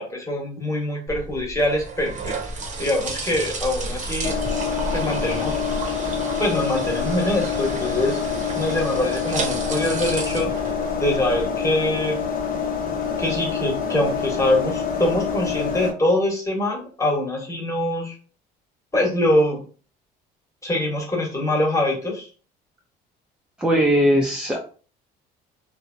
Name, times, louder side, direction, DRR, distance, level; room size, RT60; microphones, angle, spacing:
voice 1, 0.0-2.4 2.8-4.3 4.9-5.5 6.4-8.2 8.6-10.5 11.0-12.2 13.2-18.1 18.9-19.6 20.6-22.3, left 1 dB, 15° left, -1 dB, 1.2 m, -23 dB
sound 1, 1.1-11.4, right 2 dB, 40° right, 0.8 m, -32 dB
sound 2, 4.2-15.9, left 6 dB, 45° left, 0.8 m, -26 dB
voice 2, 23.6-24.6, equal, 5° right, 0 dB, 0.5 m, -19 dB
2.8 x 2.0 x 2.5 m, 0.39 s
supercardioid pair, 85°, 20 cm